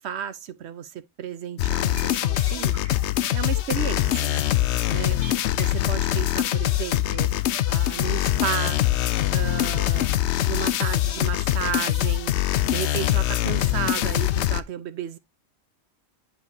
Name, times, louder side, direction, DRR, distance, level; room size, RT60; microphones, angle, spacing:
voice 1, 0.0-2.8 3.3-4.4 4.9-5.2 5.6-7.3 7.6-8.8 9.3-10.2 10.5-12.3 12.7-15.2, right 9 dB, 60° right, 0.9 m, -33 dB
sound 1, 1.6-14.6, left 13 dB, 65° left, 0.8 m, -23 dB
sound 2, 2.0-6.5 7.0-7.2, right 3 dB, 80° right, 2.6 m, -45 dB
9.9 x 4.5 x 2.7 m
omnidirectional pair, 1.4 m